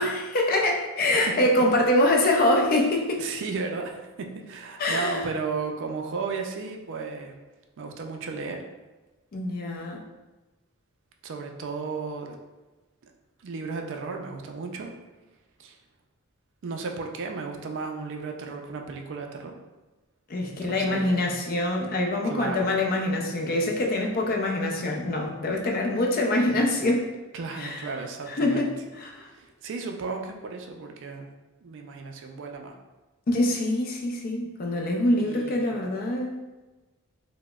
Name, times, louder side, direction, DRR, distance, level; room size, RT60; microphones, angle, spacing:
voice 1, 0.0-3.2 4.8-5.2 9.3-10.0 20.3-27.1 27.6-27.9 28.3-29.3 33.3-36.4, left 1 dB, 40° left, 1 dB, 0.4 m, -25 dB
voice 2, 3.2-7.3 7.8-8.6 11.2-12.4 13.4-14.9 15.6-15.8 16.6-19.5 20.4-21.2 22.2-22.7 27.3-28.7 29.3-31.3 31.6-32.8 35.2-35.8, right 4 dB, 55° right, 3 dB, 0.4 m, -34 dB
4.7 x 2.0 x 2.3 m, 1.2 s
head